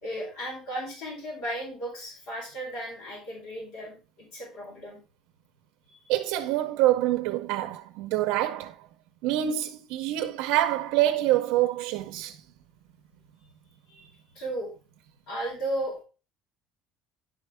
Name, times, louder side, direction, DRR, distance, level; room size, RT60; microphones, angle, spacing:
voice 1, 0.0-5.0 5.9-6.0 13.9-14.1 14.3-14.7 15.3-16.0, right 1 dB, 75° left, 4.2 m, -35 dB
voice 2, 6.1-8.8 9.2-12.4, right 14 dB, 75° right, 0.6 m, -26 dB
10.5 x 4.6 x 3.3 m
cardioid pair, 165°, 0 cm